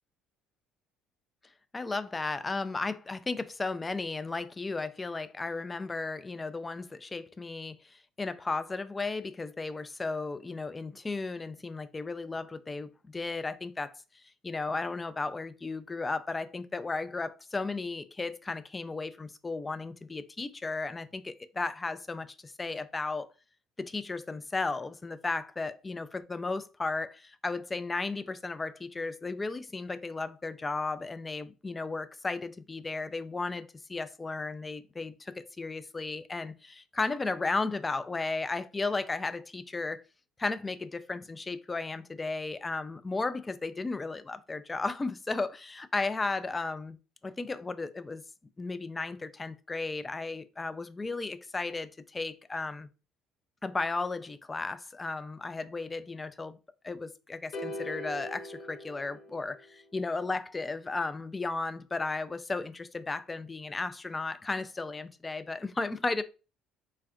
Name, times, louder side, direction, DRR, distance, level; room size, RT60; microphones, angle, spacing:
voice 1, 1.7-14.0 14.4-23.3 23.8-40.0 40.4-47.0 47.2-48.2 48.6-52.9 53.6-56.6 56.8-66.2, left 3 dB, 25° left, 0.3 m, -34 dB
sound 1, 57.5-59.8, left 1 dB, 65° left, 0.6 m, -41 dB
3.4 x 2.2 x 2.3 m
hypercardioid pair, 70°, 0 cm